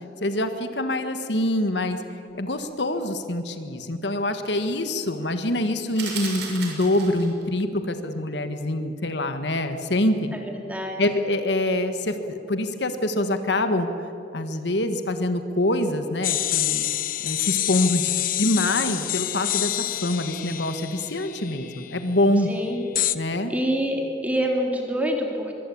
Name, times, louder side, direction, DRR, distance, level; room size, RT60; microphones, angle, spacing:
voice 1, 0.2-2.0 2.4-10.3 11.0-13.9 14.3-16.9 17.2-18.1 18.4-19.7 20.0-22.5 23.1-23.5, left 1 dB, 70° left, 8 dB, 1.6 m, -25 dB
sound 1, 6.0-7.4, right 5 dB, 65° right, 5.8 m, -34 dB
voice 2, 10.3-11.0 22.5-22.8 23.2-23.3 23.5-25.5, equal, 10° right, 1 dB, 3.4 m, -26 dB
sound 2, 16.2-21.9 23.0-23.2, left 13 dB, 50° left, 0.8 m, -27 dB
23.5 x 23.5 x 8.7 m, 2.9 s
head